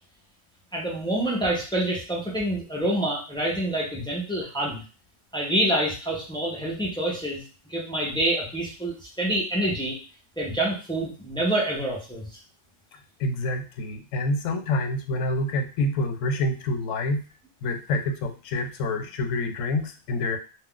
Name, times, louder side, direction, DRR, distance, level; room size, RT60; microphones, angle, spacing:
voice 1, 0.7-4.8 5.3-7.4 7.7-10.0 10.4-12.3, right 1 dB, 5° left, -3 dB, 0.3 m, -27 dB
voice 2, 13.2-17.2 17.6-20.4, left 2 dB, 70° left, 5 dB, 0.9 m, -27 dB
2.4 x 2.3 x 3.6 m, 0.35 s
omnidirectional pair, 1.4 m